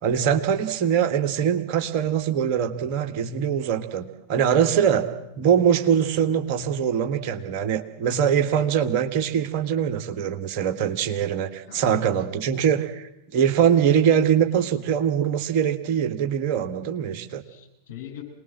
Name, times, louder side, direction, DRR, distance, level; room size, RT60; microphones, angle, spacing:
voice 1, 0.0-17.4, right 8 dB, 45° right, 7 dB, 1.7 m, -23 dB
voice 2, 11.7-12.6 17.4-18.2, left 9 dB, 60° left, 1 dB, 8.0 m, -43 dB
25.5 x 20.0 x 7.6 m, 0.83 s
figure-of-eight pair, 90°, 0 cm